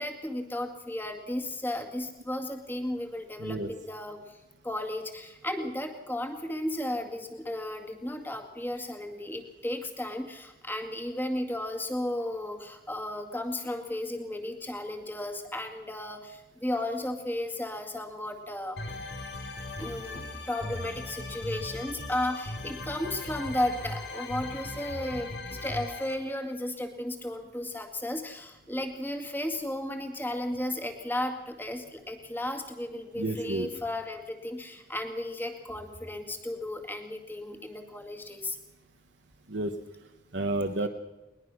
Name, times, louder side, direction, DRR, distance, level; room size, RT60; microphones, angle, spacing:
voice 1, 0.0-4.4 4.6-18.8 19.8-38.6, left 1 dB, 10° left, 5 dB, 2.1 m, -34 dB
voice 2, 3.4-3.7 33.2-33.7 39.5-39.7 40.3-40.9, right 2 dB, 75° right, 4 dB, 1.3 m, -30 dB
sound 1, 18.8-26.1, left 2 dB, 70° left, 3.5 m, -38 dB
21.0 x 20.5 x 6.3 m, 1.0 s
head